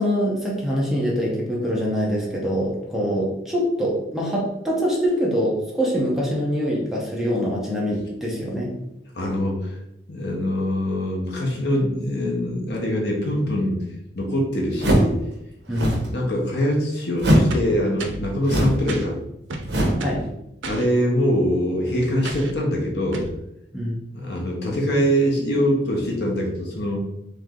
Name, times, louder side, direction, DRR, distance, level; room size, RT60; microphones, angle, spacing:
voice 1, 0.0-8.7 15.7-16.0 20.0-20.2 23.7-24.0, equal, ahead, -4 dB, 0.8 m, -24 dB
voice 2, 9.2-9.8 10.1-13.8 14.1-15.2 16.1-19.2 20.7-23.2 24.1-27.0, equal, 60° left, -2 dB, 1.0 m, -23 dB
sound 1, 14.8-15.2 15.7-16.1 17.2-17.6 18.4-18.9 19.7-20.1, right 1 dB, 65° right, 0.9 m, -20 dB
sound 2, 17.5-18.3 18.9-19.1 19.5-20.3 20.6-20.9 22.2-22.6 23.1-23.4, right 2 dB, 85° right, 0.5 m, -33 dB
3.3 x 3.2 x 3.7 m, 0.83 s
head